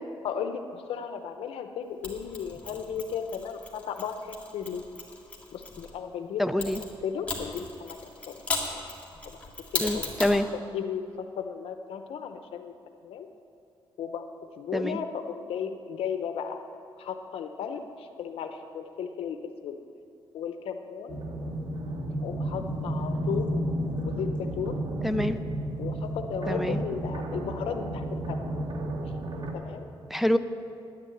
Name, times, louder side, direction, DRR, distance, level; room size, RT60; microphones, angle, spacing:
voice 1, 0.2-4.8 5.5-6.7 7.0-8.0 8.3-8.4 8.6-8.8 9.3-9.4 9.7-10.1 10.7-12.7 13.0-13.3 14.0-14.2 14.6-16.7 17.0-19.4 19.6-19.8 20.3-21.2 22.2-23.6 24.0-24.8 25.8-28.4 29.5-29.9, left 7 dB, 90° left, 7 dB, 0.7 m, -35 dB
Mechanisms, 2.0-5.9 6.6-10.4, left 2 dB, 15° left, 2.2 m, -36 dB
voice 2, 6.4-6.8 9.8-10.5 14.7-15.0 25.0-25.4 26.5-26.8 30.1-30.4, left 1 dB, ahead, 9 dB, 0.5 m, -26 dB
sound 1, 21.1-29.5, right 1 dB, 55° right, 1.7 m, -32 dB
9.7 x 9.7 x 9.2 m, 2.5 s
cardioid pair, 115°, 9 cm